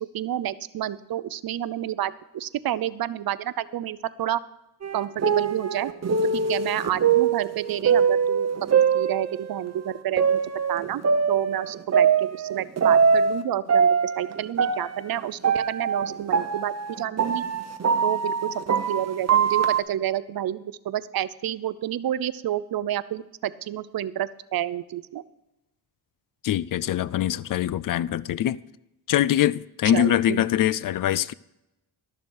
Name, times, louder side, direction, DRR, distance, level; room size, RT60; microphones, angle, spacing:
voice 1, 0.1-4.4 4.9-5.9 6.3-10.4 10.7-11.0 11.3-17.4 18.0-18.6 18.9-25.2 29.9-30.4, right 11 dB, 60° right, 0.7 m, -29 dB
sound 1, 4.8-9.6 10.2-13.4 13.7-19.8, right 6 dB, 40° right, 1.0 m, -23 dB
voice 2, 26.4-28.6 29.1-31.3, left 12 dB, 55° left, 0.4 m, -23 dB
13.0 x 7.0 x 6.4 m
cardioid pair, 90°, 40 cm